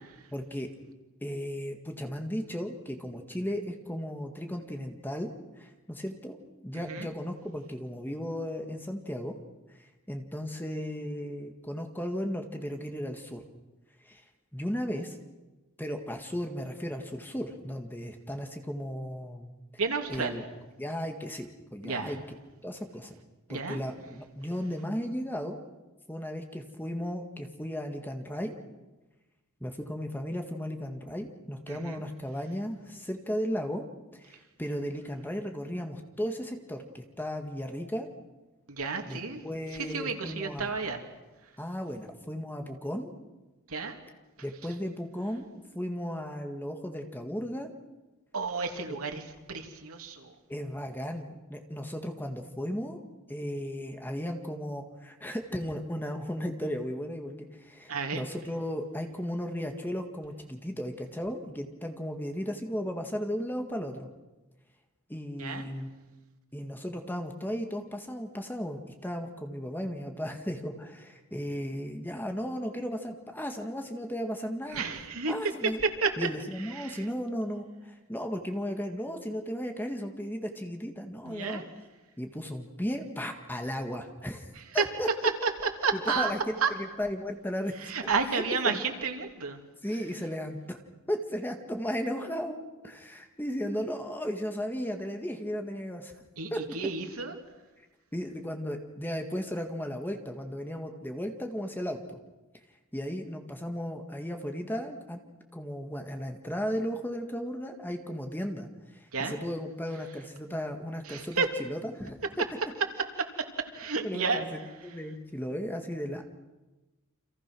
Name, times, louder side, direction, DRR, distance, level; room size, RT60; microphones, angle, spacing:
voice 1, 0.3-0.7 1.2-9.3 9.8-13.4 14.0-14.2 14.5-15.2 15.8-19.5 20.1-20.4 20.8-22.2 22.6-23.1 23.5-25.6 26.1-28.5 29.6-33.9 34.1-38.1 39.0-39.2 39.4-40.7 41.6-43.1 44.4-47.7 48.9-49.0 50.5-53.0 53.3-64.1 65.1-65.9 66.5-74.8 75.3-75.8 76.2-81.6 82.2-84.5 84.7-85.1 85.9-87.9 88.6-88.8 89.8-90.8 91.1-92.6 92.8-96.1 96.5-96.6 98.1-102.2 102.9-105.2 105.5-112.2 114.0-116.2, equal, 10° left, 4 dB, 1.9 m, -35 dB
voice 2, 6.7-7.1 19.8-20.4 21.8-22.1 23.5-23.8 31.7-32.0 38.7-39.4 39.9-41.0 43.7-44.0 48.3-49.2 49.5-50.3 57.9-58.2 65.4-65.7 74.7-75.3 76.0-76.1 76.6-77.0 81.3-81.6 84.7-84.9 85.4-85.5 85.8-86.3 86.6-86.7 87.8-89.6 96.4-97.3 109.1-109.4 111.1-111.5 113.7-114.4, right 4 dB, 85° right, 4 dB, 2.9 m, -31 dB
30.0 x 26.5 x 6.3 m, 1.1 s
head